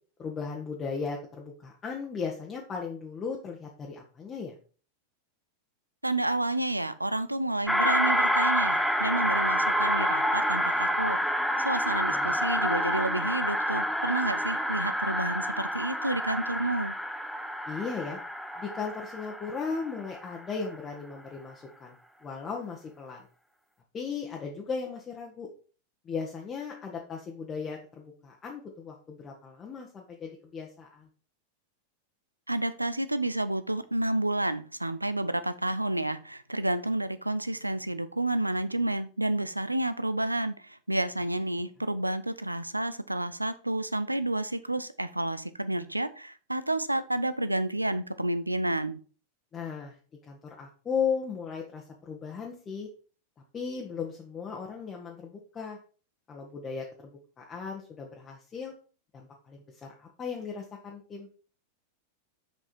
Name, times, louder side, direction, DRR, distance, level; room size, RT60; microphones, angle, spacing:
voice 1, 0.2-4.5 12.1-12.4 17.7-18.2 18.6-21.9 22.2-23.3 23.9-25.5 26.0-31.1 49.5-49.9 50.3-52.9 53.5-55.8 56.3-57.1 57.4-58.7 59.1-61.3, left 5 dB, 25° left, -1 dB, 1.3 m, -36 dB
voice 2, 6.0-17.0 32.5-49.0, right 1 dB, 85° right, 13 dB, 0.5 m, -30 dB
sound 1, 7.7-20.4, equal, ahead, 0.8 m, -28 dB
6.4 x 5.3 x 4.4 m, 0.40 s
figure-of-eight pair, 90°, 0 cm